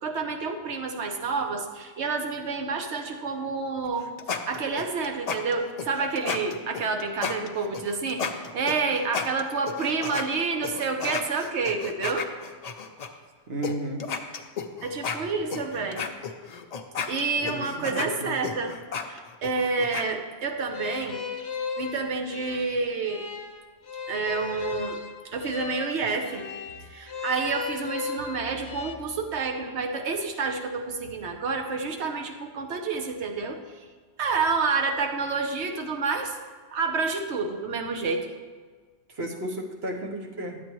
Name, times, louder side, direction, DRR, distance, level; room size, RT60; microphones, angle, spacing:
voice 1, 0.0-12.3 14.8-16.0 17.1-18.8 19.0-21.2 21.8-23.2 24.1-25.0 25.2-26.5 26.8-33.6 34.2-36.4 36.7-38.3, right 4 dB, 85° right, 4 dB, 1.1 m, -29 dB
sound 1, 3.8-10.3 10.6-13.1 13.6-13.7 14.0-20.1, left 6 dB, 50° left, 0.5 m, -33 dB
voice 2, 13.5-14.0 17.4-18.4 39.1-40.6, right 1 dB, 70° right, 0 dB, 1.3 m, -33 dB
sound 2, 20.7-28.9, left 5 dB, 80° left, 0.9 m, -36 dB
11.0 x 8.2 x 3.1 m, 1.5 s
omnidirectional pair, 1.1 m